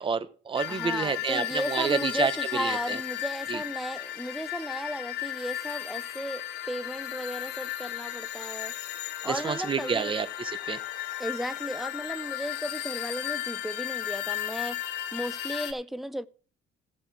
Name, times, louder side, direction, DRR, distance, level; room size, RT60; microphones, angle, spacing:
voice 1, 0.0-3.0 3.5-3.6 9.2-10.8, right 5 dB, 30° right, 1.1 m, -29 dB
sound 1, 0.6-15.7, left 13 dB, 80° left, 1.0 m, -35 dB
voice 2, 0.7-8.7 9.2-10.2 11.2-16.3, equal, ahead, 0.6 m, -35 dB
16.5 x 6.6 x 3.7 m
cardioid pair, 110°, 17 cm